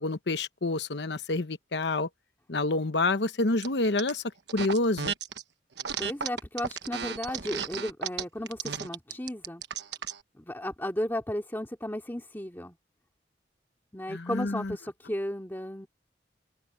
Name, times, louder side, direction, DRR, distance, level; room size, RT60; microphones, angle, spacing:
voice 1, 0.0-2.1 2.5-4.2 4.5-5.1 14.1-14.7, left 2 dB, 70° left, 1.0 m, -28 dB
sound 1, 3.6-4.1 4.5-5.4 5.8-10.2, right 7 dB, 70° right, 1.2 m, -34 dB
voice 2, 6.0-9.6 10.4-12.8 13.9-15.9, left 1 dB, 10° left, 2.4 m, -34 dB
open air
head